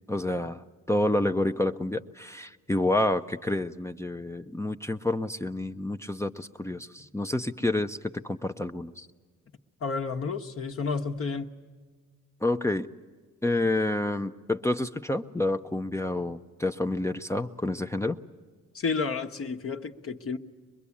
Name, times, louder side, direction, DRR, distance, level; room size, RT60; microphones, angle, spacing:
voice 1, 0.1-8.0 8.2-9.1 12.4-12.9 13.4-18.2, left 1 dB, 10° left, 7 dB, 0.7 m, -29 dB
voice 2, 9.8-11.5 18.7-20.4, left 4 dB, 50° left, 4 dB, 1.2 m, -31 dB
24.0 x 21.5 x 8.5 m, 1.5 s
cardioid pair, 90°, 30 cm